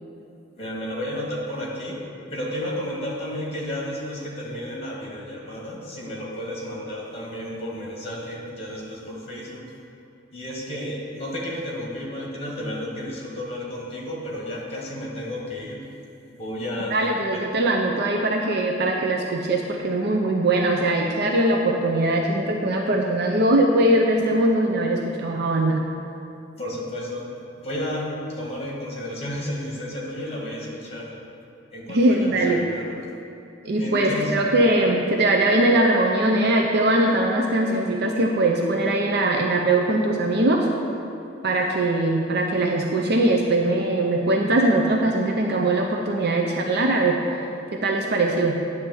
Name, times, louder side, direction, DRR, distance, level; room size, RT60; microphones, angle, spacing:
voice 1, 0.6-2.0 2.3-9.6 10.3-15.8 16.4-17.5 26.6-27.2 27.6-31.1 31.7-33.0 33.8-34.4, left 1 dB, 35° left, -3 dB, 1.6 m, -32 dB
voice 2, 16.9-25.8 31.9-32.6 33.6-40.7 41.4-47.4 47.8-48.6, right 1 dB, 55° right, 1 dB, 0.6 m, -21 dB
9.7 x 3.3 x 6.9 m, 2.9 s
head